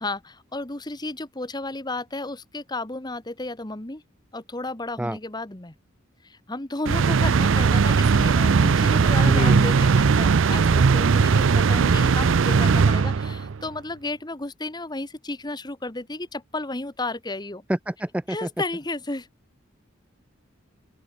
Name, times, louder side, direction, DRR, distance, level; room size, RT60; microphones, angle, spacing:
voice 1, 0.0-4.0 4.3-5.7 6.2-17.6 18.3-19.3, left 2 dB, 20° left, 1.3 m, -33 dB
sound 1, 6.9-13.6, right 5 dB, 70° right, 0.5 m, -19 dB
voice 2, 9.2-9.7 17.7-18.5, right 1 dB, 5° right, 0.4 m, -27 dB
open air
head